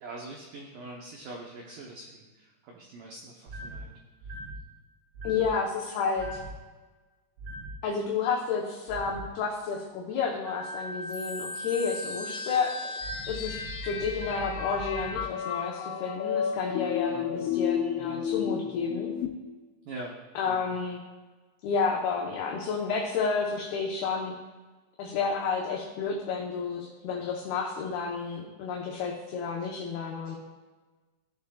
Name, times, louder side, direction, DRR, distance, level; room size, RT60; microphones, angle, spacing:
voice 1, 0.0-3.9 13.2-13.3 19.9-20.2 20.5-20.7, right 2 dB, 80° right, -1 dB, 1.9 m, -43 dB
sound 1, 3.5-3.8 4.2-4.6 5.1-5.5 6.2-6.5 7.4-7.7 8.9-9.2 10.5-15.2, right 1 dB, 60° right, 3.3 m, -39 dB
voice 2, 5.2-6.4 7.8-12.8 13.3-19.1 20.4-21.0 21.6-24.3 25.0-30.4, left 5 dB, 75° left, -2 dB, 2.6 m, -31 dB
sound 2, 11.1-19.3, left 8 dB, 90° left, 2.9 m, -33 dB
17.5 x 7.0 x 2.4 m, 1.3 s
omnidirectional pair, 5.2 m